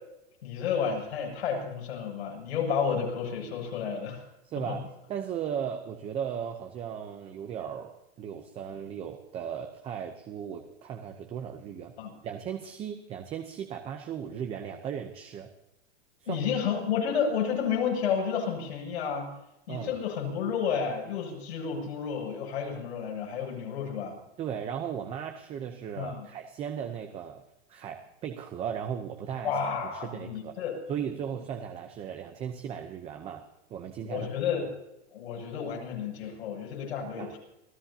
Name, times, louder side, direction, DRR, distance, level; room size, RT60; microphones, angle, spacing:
voice 1, 0.4-4.2 4.7-4.8 12.0-12.1 16.2-19.3 19.7-24.2 26.0-26.3 29.4-30.8 34.0-34.6 35.1-37.4, left 7 dB, 90° left, 0 dB, 7.9 m, -31 dB
voice 2, 4.4-11.9 12.2-15.5 16.2-16.5 19.7-20.0 24.4-27.4 27.7-29.5 29.8-30.6 30.9-34.3 37.2-37.3, right 8 dB, 20° right, 5 dB, 0.8 m, -36 dB
28.5 x 16.0 x 2.9 m, 0.91 s
supercardioid pair, 165°, 31 cm